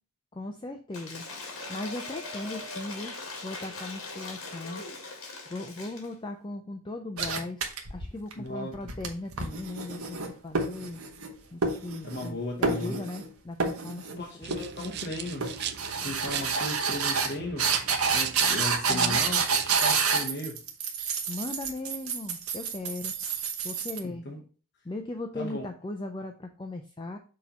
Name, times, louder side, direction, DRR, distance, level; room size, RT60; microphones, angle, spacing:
voice 1, 0.3-1.2 1.7-3.1 3.4-4.8 5.5-11.0 11.5-14.5 18.9-19.2 21.3-23.1 23.6-24.2 24.8-27.2, left 2 dB, 20° left, 0.4 m, -38 dB
Cheering / Applause / Crowd, 0.9-6.1, left 3 dB, 70° left, 1.8 m, -40 dB
sound 1, 7.2-8.3 8.7-11.3 11.6-12.3 12.6-13.3 13.6-14.2 14.5-15.0 15.4-24.0, right 5 dB, 70° right, 1.0 m, -29 dB
voice 2, 8.4-8.9 12.0-13.0 14.1-15.5 16.0-17.7 18.1-20.6 24.0-24.4 25.3-25.7, left 1 dB, 45° left, 0.8 m, -36 dB
sound 2, 14.4-19.9, right 10 dB, 45° right, 0.4 m, -36 dB
6.2 x 2.9 x 5.3 m
head